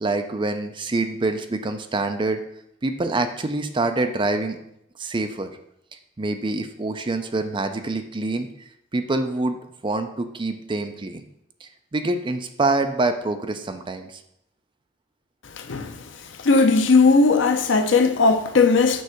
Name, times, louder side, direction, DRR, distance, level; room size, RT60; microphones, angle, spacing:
voice 1, 0.0-2.4 2.8-4.6 5.0-5.5 6.2-8.5 8.9-11.2 11.6-14.2, right 2 dB, 25° right, 0.5 m, -26 dB
voice 2, 16.4-19.0, left 4 dB, 75° left, 0.6 m, -17 dB
6.3 x 3.3 x 5.7 m
head